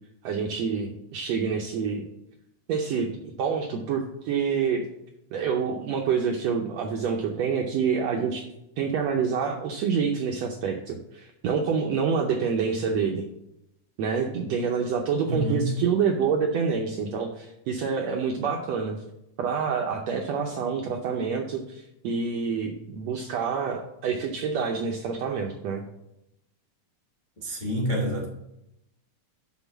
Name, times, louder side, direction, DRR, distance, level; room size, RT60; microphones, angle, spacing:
voice 1, 0.2-2.0 2.7-4.8 5.3-8.4 8.8-13.3 14.0-19.0 19.4-25.8, right 6 dB, 80° right, 2 dB, 1.5 m, -27 dB
voice 2, 15.3-15.8 27.4-28.3, equal, 45° left, -4 dB, 0.6 m, -27 dB
6.1 x 5.9 x 7.0 m, 0.85 s
omnidirectional pair, 3.8 m